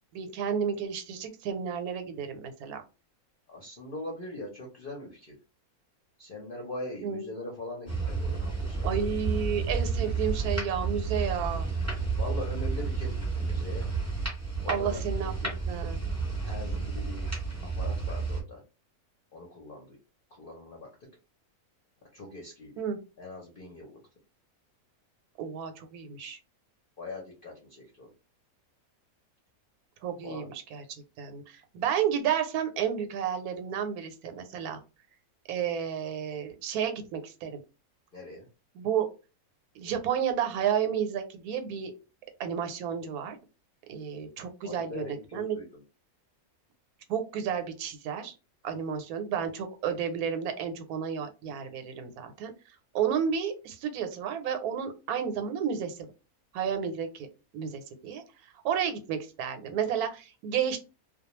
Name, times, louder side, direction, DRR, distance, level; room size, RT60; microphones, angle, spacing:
voice 1, 0.1-2.8 7.0-7.3 8.8-11.7 14.7-16.0 22.8-23.0 25.4-26.4 30.0-30.8 31.2-34.8 35.5-37.6 38.7-39.1 39.8-41.9 42.4-43.4 43.9-45.6 47.1-48.3 48.6-52.5 52.9-56.0 56.5-57.3 57.5-58.2 58.6-60.8, right 8 dB, 90° right, 7 dB, 1.1 m, -31 dB
voice 2, 3.5-5.4 6.2-9.0 12.1-13.9 14.6-15.0 15.9-16.0 16.4-17.3 17.7-18.6 19.3-20.0 20.3-20.9 22.1-22.8 23.2-24.0 27.0-28.1 30.2-30.5 38.1-38.5 44.6-45.8, left 2 dB, 50° left, -1 dB, 0.7 m, -41 dB
sound 1, 7.9-18.4, right 4 dB, 15° right, 0.9 m, -31 dB
2.3 x 2.2 x 2.9 m, 0.31 s
omnidirectional pair, 1.6 m